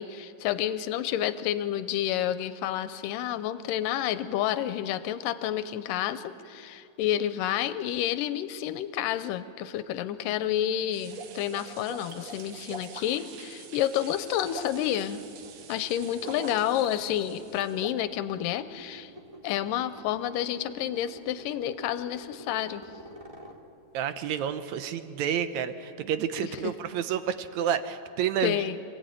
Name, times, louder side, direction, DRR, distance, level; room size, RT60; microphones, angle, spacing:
voice 1, 0.0-15.2 15.7-19.1 19.4-22.8 28.4-28.8, left 11 dB, 85° left, 12 dB, 2.4 m, -29 dB
sound 1, 10.8-13.3 13.8-15.0 16.2-17.0 17.2-18.0, right 2 dB, 40° right, 1.5 m, -42 dB
sound 2, 10.9-17.9, right 8 dB, 90° right, 3.0 m, -49 dB
sound 3, 14.1-24.4, right 1 dB, 10° right, 1.8 m, -49 dB
voice 2, 23.9-28.6, right 9 dB, 70° right, 10 dB, 1.9 m, -30 dB
26.5 x 17.5 x 9.0 m, 2.6 s
omnidirectional pair, 3.9 m